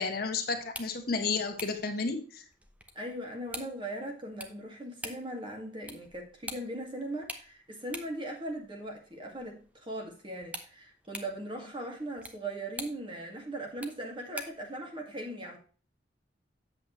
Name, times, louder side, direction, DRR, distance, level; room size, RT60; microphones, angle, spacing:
voice 1, 0.0-2.4, left 4 dB, 55° left, 1.4 m, -32 dB
sound 1, 0.6-14.7, right 1 dB, 10° right, 0.9 m, -48 dB
voice 2, 2.9-15.6, right 1 dB, 30° right, 2.1 m, -39 dB
8.4 x 7.6 x 3.1 m
head